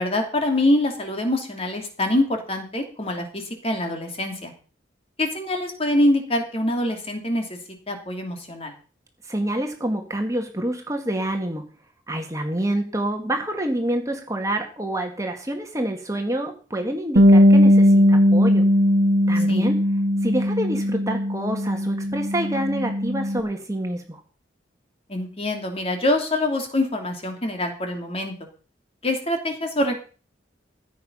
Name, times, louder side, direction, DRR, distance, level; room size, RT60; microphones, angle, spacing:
voice 1, 0.0-4.5 5.2-7.6 7.9-8.7 19.5-19.7 25.1-28.3 29.0-29.9, left 1 dB, 30° left, 4 dB, 2.9 m, -24 dB
voice 2, 9.3-11.6 12.1-18.6 19.3-19.8 20.2-24.2, right 1 dB, 15° right, 3 dB, 1.9 m, -27 dB
Bass guitar, 17.2-23.4, equal, 70° right, 1.5 m, -18 dB
15.5 x 9.3 x 5.6 m, 0.39 s
head